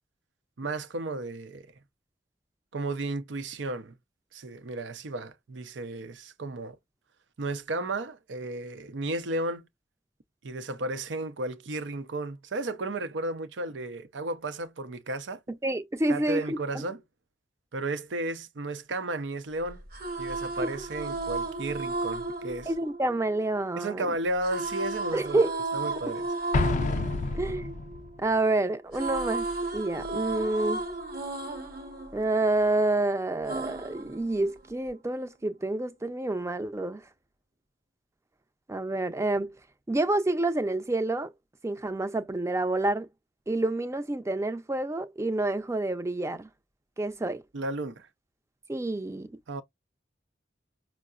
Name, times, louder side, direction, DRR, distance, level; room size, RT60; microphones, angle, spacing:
voice 1, 0.6-1.7 2.7-4.0 4.3-6.8 7.4-9.7 10.4-15.4 16.1-17.0 17.7-19.8 20.2-22.7 23.8-25.4 25.7-26.3 47.5-48.1 49.5-49.6, right 2 dB, 85° right, 0.6 m, -33 dB
voice 2, 15.6-16.8 20.6-20.7 22.7-24.1 25.1-25.6 27.3-27.8 28.2-30.8 32.1-37.0 38.7-39.5 39.9-41.3 41.6-43.1 43.5-46.5 47.0-47.4 48.7-49.3, right 2 dB, 15° right, 0.4 m, -28 dB
sound 1, 19.7-23.8 24.4-28.5 28.7-33.0 33.5-34.9, right 3 dB, 55° right, 1.0 m, -34 dB
Explosion, 26.5-28.2, left 3 dB, 45° left, 0.4 m, -28 dB
5.5 x 2.0 x 2.4 m
head